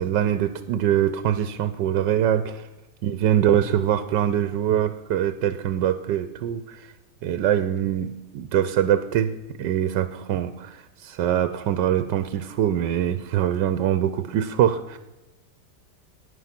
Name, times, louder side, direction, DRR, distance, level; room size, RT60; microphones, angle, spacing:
voice 1, 0.0-2.7 3.0-6.9 7.2-9.3 9.6-15.0, right 10 dB, 85° right, 11 dB, 1.3 m, -23 dB
16.0 x 9.9 x 5.9 m, 1.0 s
omnidirectional pair, 1.9 m